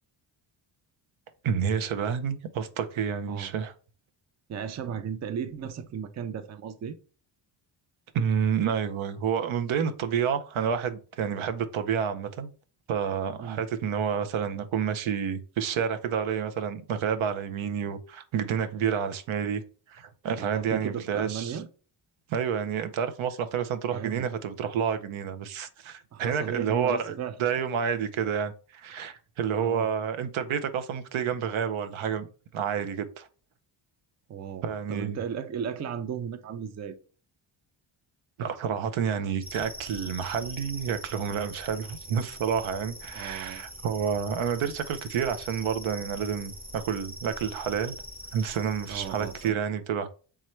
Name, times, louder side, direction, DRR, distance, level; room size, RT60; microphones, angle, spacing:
voice 1, 1.4-3.7 8.1-12.5 12.9-19.6 19.9-21.6 22.3-32.3 32.5-33.3 34.6-35.2 38.4-47.9 48.3-50.1, right 7 dB, 85° right, 0.7 m, -29 dB
voice 2, 4.5-7.0 13.4-13.6 20.4-21.7 23.9-24.3 26.1-27.3 29.6-29.9 34.3-37.0 43.1-43.7 48.9-49.6, right 8 dB, 35° right, 0.5 m, -35 dB
sound 1, 39.4-49.5, equal, 20° right, 1.0 m, -43 dB
3.6 x 3.1 x 4.3 m
wide cardioid pair, 130°, 47 cm